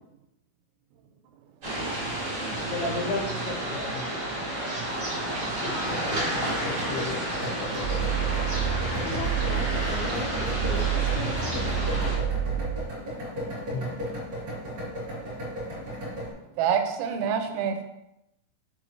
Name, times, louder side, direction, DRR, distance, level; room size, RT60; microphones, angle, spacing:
sound 1, 1.6-12.2, right 1 dB, 45° right, 1.3 m, -31 dB
voice 1, 2.4-4.3 5.6-8.5 13.7-13.9, left 3 dB, 65° left, -3 dB, 2.9 m, -36 dB
sound 2, 5.8-16.3, equal, 60° right, 0.9 m, -35 dB
sound 3, 7.8-12.8, right 9 dB, 45° left, 3.0 m, -29 dB
voice 2, 8.3-11.8, left 6 dB, 85° left, 5 dB, 3.1 m, -39 dB
voice 3, 16.6-17.8, right 7 dB, 85° right, 6 dB, 3.3 m, -26 dB
6.7 x 6.2 x 3.1 m, 0.86 s
omnidirectional pair, 5.9 m